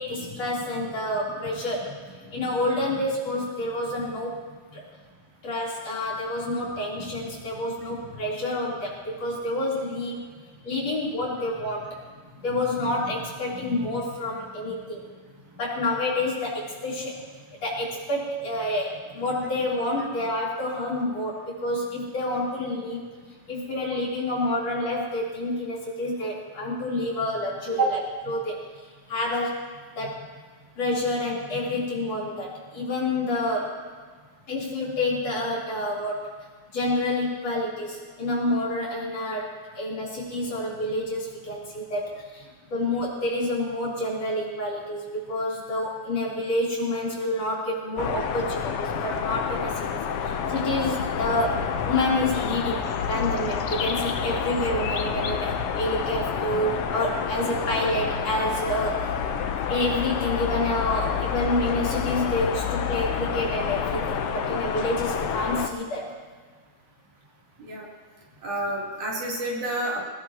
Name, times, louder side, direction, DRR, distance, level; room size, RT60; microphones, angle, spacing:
voice 1, 0.0-4.4 4.7-4.8 5.4-10.2 10.6-12.0 12.4-15.0 15.6-17.2 17.6-23.1 23.5-28.0 28.3-28.6 29.1-29.6 30.0-30.3 30.8-33.8 34.5-36.3 36.7-49.9 50.2-52.8 53.1-59.1 59.7-66.1, left 1 dB, 55° left, -6 dB, 4.7 m, -28 dB
sound 1, 48.0-65.7, left 7 dB, 75° left, 1.3 m, -28 dB
voice 2, 68.4-70.0, right 2 dB, 70° right, -4 dB, 4.7 m, -28 dB
23.0 x 18.5 x 2.9 m, 1.5 s
omnidirectional pair, 3.6 m